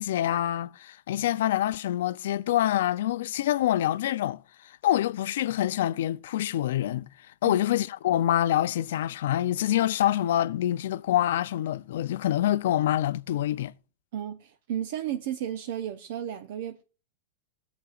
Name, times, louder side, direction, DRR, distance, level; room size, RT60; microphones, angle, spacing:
voice 1, 0.0-7.1 7.4-13.7, left 12 dB, 75° left, 0.4 m, -26 dB
voice 2, 14.1-16.8, right 10 dB, 60° right, 0.7 m, -33 dB
20.0 x 8.0 x 2.5 m
supercardioid pair, 160°, 0 cm